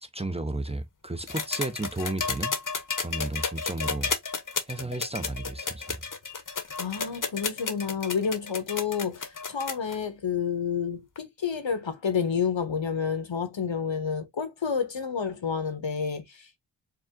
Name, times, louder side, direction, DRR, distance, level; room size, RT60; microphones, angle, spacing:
voice 1, 0.0-2.5 3.0-4.1 4.7-6.0, right 2 dB, 15° right, 0.5 m, -33 dB
sound 1, 1.3-10.0 11.2-11.3, left 5 dB, 45° left, 0.8 m, -32 dB
voice 2, 6.8-16.6, left 6 dB, 85° left, 1.1 m, -29 dB
4.8 x 2.0 x 3.6 m
wide cardioid pair, 55°, 44 cm